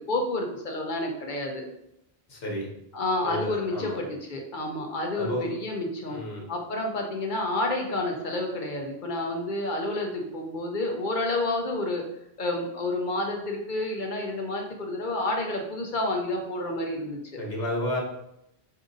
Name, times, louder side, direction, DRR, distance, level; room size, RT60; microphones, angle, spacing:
voice 1, 0.1-1.6 2.9-6.2 6.5-12.0 12.4-17.4, left 2 dB, 55° left, 1 dB, 0.7 m, -29 dB
voice 2, 2.3-2.7 3.2-4.0 5.1-5.5 6.1-6.5 17.4-18.0, equal, 85° left, -2 dB, 1.3 m, -31 dB
4.9 x 2.7 x 2.5 m, 0.80 s
omnidirectional pair, 1.1 m